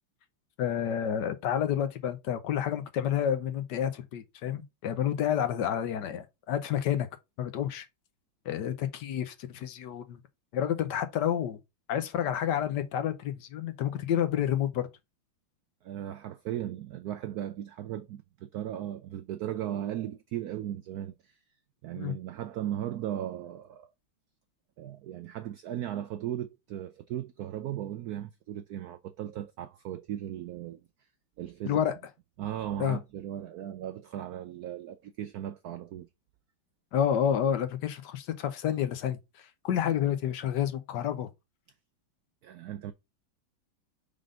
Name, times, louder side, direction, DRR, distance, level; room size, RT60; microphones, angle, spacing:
voice 1, 0.6-7.1 7.4-7.8 8.4-10.2 10.5-11.6 11.9-14.9 21.9-22.1 31.6-31.9 32.8-33.0 36.9-41.3, left 9 dB, 65° left, 1.2 m, -29 dB
voice 2, 15.8-21.4 21.8-23.9 24.8-30.8 31.4-31.8 32.4-36.1 42.4-42.9, right 11 dB, 85° right, 0.8 m, -37 dB
5.1 x 3.9 x 4.9 m
omnidirectional pair, 2.2 m